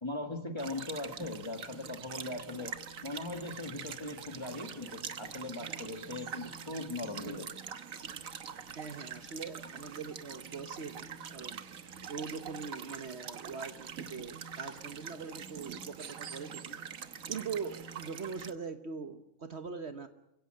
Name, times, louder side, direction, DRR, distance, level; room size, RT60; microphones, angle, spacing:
voice 1, 0.0-7.5, left 2 dB, 20° left, 5 dB, 1.8 m, -40 dB
sound 1, 0.6-18.5, right 7 dB, 70° right, 1.5 m, -44 dB
voice 2, 8.7-11.6 12.1-16.8 17.3-20.1, right 5 dB, 50° right, 8 dB, 1.3 m, -42 dB
28.0 x 17.0 x 7.8 m, 0.88 s
omnidirectional pair, 1.5 m